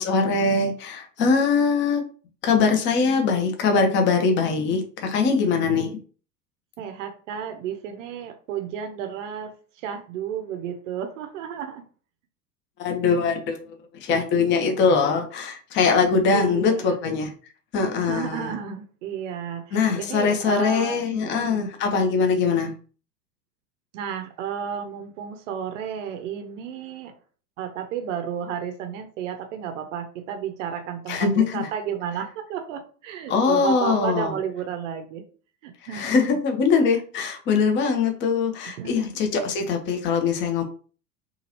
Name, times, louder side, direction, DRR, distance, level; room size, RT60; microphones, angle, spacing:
voice 1, 0.0-2.0 2.4-6.0 12.8-17.3 17.7-18.5 19.7-22.7 31.1-31.7 33.3-34.4 35.9-40.6, left 5 dB, 25° left, 4 dB, 0.6 m, -22 dB
voice 2, 6.8-11.8 16.3-17.0 18.0-21.7 23.9-27.1 27.6-35.2 35.6-36.3 38.7-39.2, right 8 dB, 50° right, 7 dB, 0.6 m, -32 dB
2.8 x 2.4 x 2.8 m, 0.39 s
figure-of-eight pair, 85°, 49 cm